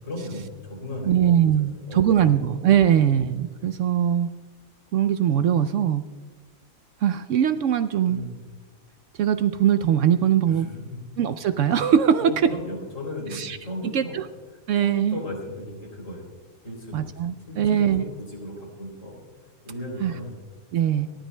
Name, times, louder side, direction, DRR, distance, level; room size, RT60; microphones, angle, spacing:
voice 1, 0.0-1.4 1.7-2.3 2.9-3.1 8.0-8.3 10.4-10.8 12.2-14.2 14.5-16.3 16.6-17.1 17.5-19.2 19.6-20.3 20.9-21.1, left 1 dB, 60° left, 0 dB, 3.6 m, -36 dB
voice 2, 1.1-4.3 4.9-6.1 7.0-8.2 9.2-10.7 11.2-12.3 13.3-13.6 13.9-14.2 14.7-15.2 16.9-18.0 20.0-20.1 20.7-21.1, right 9 dB, 70° right, 10 dB, 0.8 m, -21 dB
29.5 x 12.5 x 2.2 m, 1.5 s
omnidirectional pair, 1.5 m